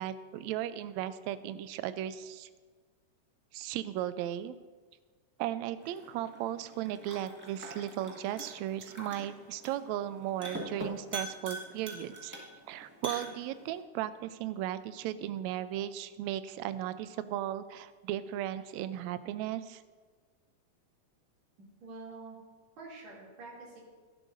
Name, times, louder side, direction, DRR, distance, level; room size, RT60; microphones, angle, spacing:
voice 1, 0.0-2.5 3.5-4.5 5.4-12.3 12.7-19.8, right 12 dB, 80° right, 12 dB, 1.8 m, -36 dB
sound 1, 5.8-13.8, right 1 dB, 15° right, 0.8 m, -44 dB
voice 2, 21.6-22.4 22.8-23.8, right 3 dB, 60° right, -4 dB, 3.9 m, -47 dB
17.5 x 11.5 x 2.6 m, 1.5 s
omnidirectional pair, 3.4 m